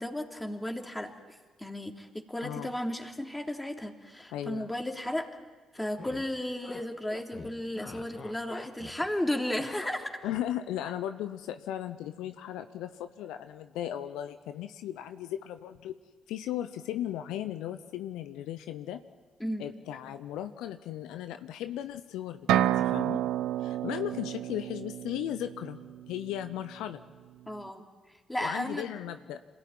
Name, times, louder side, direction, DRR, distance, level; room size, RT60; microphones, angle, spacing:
voice 1, 0.0-5.3 5.7-10.2 19.4-19.7 27.5-27.8 28.3-28.9, left 1 dB, 10° left, 3 dB, 3.2 m, -34 dB
voice 2, 2.4-2.7 4.3-4.7 10.2-16.0 16.3-19.0 19.6-23.2 23.6-25.8 26.1-27.0 28.4-29.4, left 12 dB, 75° left, 10 dB, 0.8 m, -36 dB
sound 1, 5.8-6.3 6.6-6.8 7.1-9.1 9.3-10.4 10.8-10.9, left 3 dB, 40° left, 2.8 m, -45 dB
sound 2, 22.5-26.2, right 12 dB, 70° right, 0.6 m, -30 dB
27.0 x 16.5 x 9.2 m, 1.4 s
hypercardioid pair, 45°, 0 cm